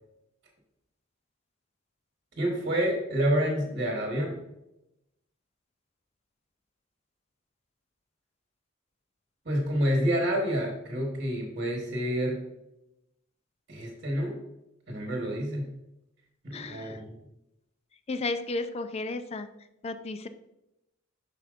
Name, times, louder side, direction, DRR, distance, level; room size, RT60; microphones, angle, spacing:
voice 1, 2.4-4.4 9.4-12.4 13.7-14.4 14.9-15.7 16.4-17.2, equal, 45° right, 0 dB, 1.3 m, -28 dB
voice 2, 16.5-17.0 18.1-19.5 19.8-20.3, left 3 dB, 30° left, 10 dB, 0.4 m, -33 dB
7.6 x 5.8 x 2.5 m, 0.90 s
head